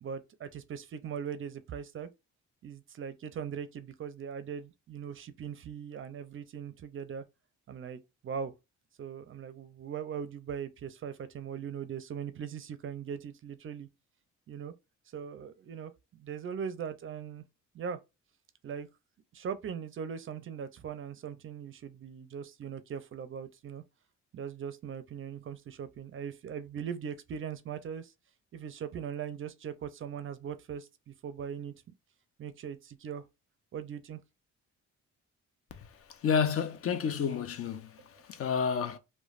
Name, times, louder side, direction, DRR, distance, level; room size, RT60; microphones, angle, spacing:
voice 1, 0.0-2.1 2.6-7.2 7.7-8.5 9.0-13.9 14.5-14.7 15.1-17.4 17.7-18.0 18.6-18.9 19.3-23.8 24.3-28.1 28.5-31.7 32.4-33.2 33.7-34.2 38.1-38.2, right 7 dB, 45° right, 0.4 m, -40 dB
voice 2, 36.2-39.0, left 6 dB, 50° left, 0.5 m, -30 dB
3.0 x 2.1 x 2.4 m
cardioid pair, 90°, 30 cm